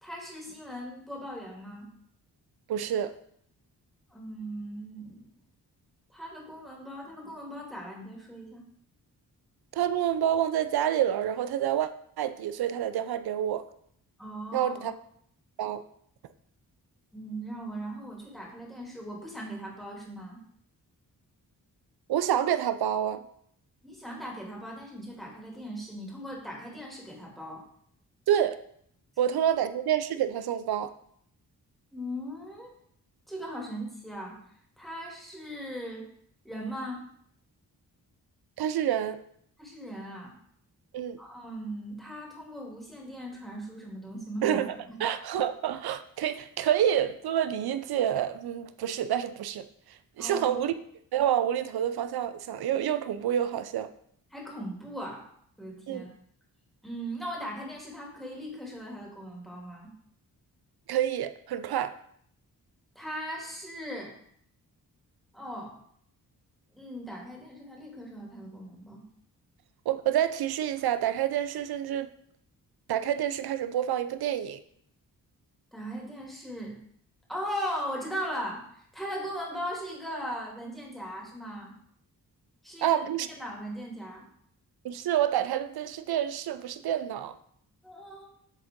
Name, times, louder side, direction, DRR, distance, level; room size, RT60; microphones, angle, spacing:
voice 1, 0.0-1.9 4.1-5.3 6.1-8.6 14.2-14.9 17.1-20.4 23.8-27.6 31.9-32.7 33.3-34.4 34.8-36.1 36.4-37.0 39.6-40.3 41.2-44.6 44.9-45.0 50.2-50.6 54.3-55.2 55.6-56.1 56.8-59.9 62.9-64.1 65.3-65.8 66.7-69.0 75.7-76.8 77.3-81.7 82.6-83.0 83.4-84.3 87.8-88.3, equal, ahead, -2 dB, 2.5 m, -38 dB
voice 2, 2.7-3.1 9.7-11.9 12.2-13.6 14.5-14.9 15.6-15.8 22.1-23.2 28.3-28.6 29.2-30.9 38.6-39.2 40.9-41.2 44.4-44.7 45.0-49.7 50.2-50.7 51.1-53.9 55.9-56.0 60.9-62.0 69.9-72.1 72.9-74.6 82.8-83.3 84.8-87.3, right 10 dB, 65° right, 12 dB, 0.6 m, -28 dB
7.5 x 3.7 x 3.7 m, 0.67 s
supercardioid pair, 40°, 41 cm